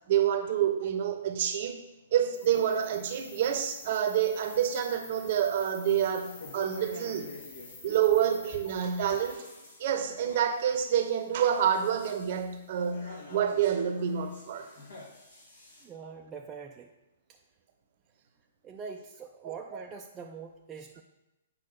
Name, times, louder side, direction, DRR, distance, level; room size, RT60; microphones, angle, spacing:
voice 1, 0.1-1.8 2.1-7.3 7.8-9.4 9.8-14.7 19.4-19.5, right 9 dB, 45° right, 7 dB, 0.8 m, -28 dB
sound 1, 2.3-9.3, left 3 dB, 35° left, 2.7 m, -49 dB
sound 2, 4.0-4.8 5.2-7.8 8.8-15.8, left 2 dB, 65° left, 2.1 m, -50 dB
voice 2, 15.8-16.9 17.3-17.4 18.6-21.0, right 5 dB, 20° right, 1 dB, 0.5 m, -43 dB
8.4 x 5.4 x 4.0 m, 0.98 s
figure-of-eight pair, 115°, 0 cm